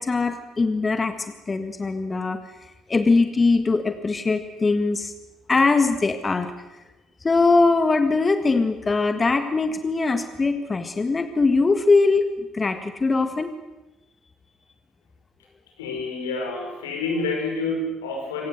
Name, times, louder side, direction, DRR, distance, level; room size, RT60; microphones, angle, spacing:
voice 1, 0.0-2.4 2.9-5.1 5.5-6.5 7.2-12.3 12.5-13.5, left 3 dB, 30° left, 9 dB, 1.7 m, -21 dB
voice 2, 15.8-18.5, left 3 dB, 85° left, 1 dB, 5.4 m, -28 dB
25.5 x 17.5 x 7.9 m, 1.0 s
hypercardioid pair, 50°, 0 cm